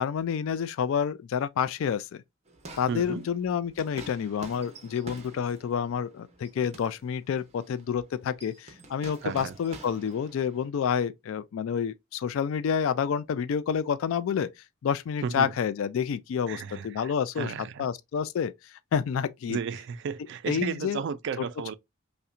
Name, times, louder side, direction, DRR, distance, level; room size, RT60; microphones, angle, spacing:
voice 1, 0.0-2.2 2.8-14.5 14.8-17.5 17.8-19.6 20.5-21.0 21.4-21.5, left 7 dB, 70° left, 0.3 m, -29 dB
sound 1, 2.4-10.7, right 2 dB, 30° right, 0.8 m, -48 dB
voice 2, 2.9-3.3 9.2-9.5 15.2-15.5 16.5-17.9 19.5-21.7, right 6 dB, 55° right, 0.3 m, -34 dB
5.5 x 2.1 x 2.5 m
head